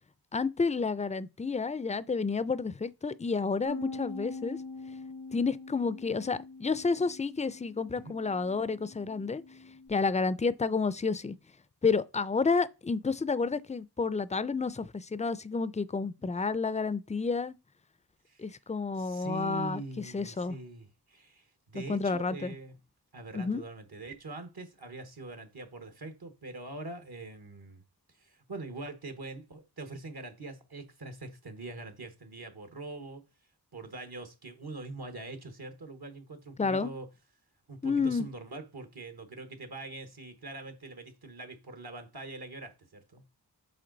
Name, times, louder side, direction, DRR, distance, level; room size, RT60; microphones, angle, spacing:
voice 1, 0.3-4.6 5.3-9.4 9.9-11.4 11.8-17.5 18.4-20.6 21.7-22.5 23.3-23.6 36.6-36.9 37.8-38.2, left 4 dB, 20° left, 0.4 m, -30 dB
Bass guitar, 3.6-9.9, left 3 dB, 90° left, 1.2 m, -44 dB
voice 2, 18.9-22.8 23.1-27.8 28.1-33.2 33.7-37.1 37.7-43.2, right 2 dB, 65° right, 1.2 m, -43 dB
7.7 x 3.9 x 3.9 m
wide cardioid pair, 55°, 40 cm